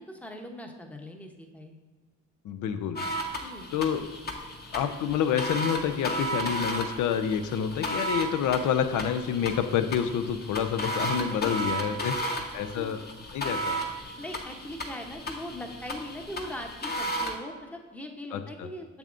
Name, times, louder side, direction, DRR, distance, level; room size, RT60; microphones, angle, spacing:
voice 1, 0.0-1.8 3.4-3.7 10.9-11.8 12.2-12.5 12.7-12.9 14.1-19.0, left 1 dB, 5° left, 3 dB, 0.8 m, -41 dB
voice 2, 2.4-3.0 3.7-4.0 4.7-12.1 12.5-13.0 13.3-13.8 18.3-18.7, left 8 dB, 80° left, 9 dB, 0.6 m, -28 dB
sound 1, 3.0-17.3, right 1 dB, 35° left, 1.0 m, -34 dB
6.9 x 6.8 x 2.5 m, 1.4 s
cardioid pair, 90°, 30 cm